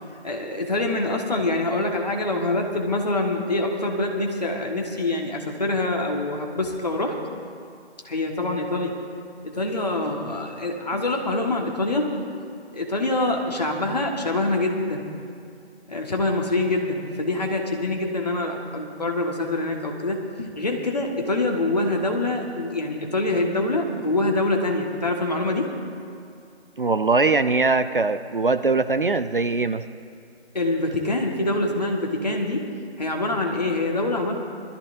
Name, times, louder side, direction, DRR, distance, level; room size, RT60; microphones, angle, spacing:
voice 1, 0.2-7.2 8.0-9.0 9.4-12.1 12.7-15.0 15.9-25.7 30.5-32.6 33.0-34.3, left 2 dB, 40° left, 1 dB, 1.6 m, -25 dB
voice 2, 26.8-29.8, right 3 dB, 55° right, 11 dB, 0.5 m, -21 dB
24.0 x 13.5 x 2.6 m, 2.4 s
figure-of-eight pair, 175°, 33 cm